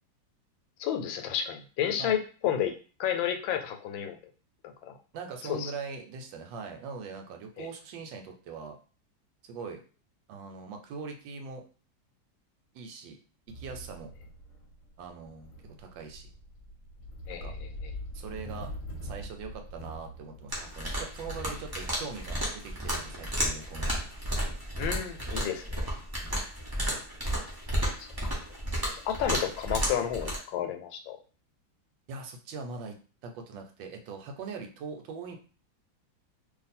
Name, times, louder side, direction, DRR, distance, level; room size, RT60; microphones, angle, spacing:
voice 1, 0.8-2.7 3.0-4.2 4.8-4.9 5.5-5.7 7.6-7.7 17.3-17.6 24.8-25.8 28.0-28.3 29.1-31.2, left 9 dB, 85° left, 6 dB, 1.3 m, -31 dB
voice 2, 5.1-8.8 9.4-9.8 10.3-11.6 12.7-13.2 13.5-14.1 15.0-16.3 17.3-17.5 18.1-18.7 19.0-23.9 26.2-26.3 32.1-35.4, right 5 dB, 80° right, 4 dB, 1.3 m, -41 dB
sound 1, 13.5-23.7, left 1 dB, 55° left, 0.9 m, -44 dB
sound 2, 20.5-30.4, equal, 30° right, 0.4 m, -32 dB
2.7 x 2.5 x 4.1 m, 0.37 s
omnidirectional pair, 2.1 m